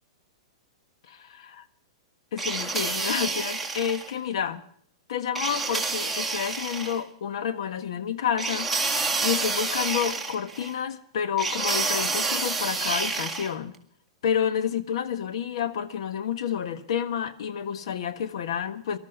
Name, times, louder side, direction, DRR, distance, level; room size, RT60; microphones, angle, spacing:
voice 1, 1.1-1.7 2.3-4.6 5.1-13.7 14.2-19.0, left 8 dB, 70° left, 1.4 m, -29 dB
sound 1, 2.4-4.1 5.4-7.0 8.4-10.7 11.4-13.5, right 3 dB, 5° right, 2.0 m, -28 dB
19.0 x 12.5 x 5.4 m
hypercardioid pair, 130°, 3 cm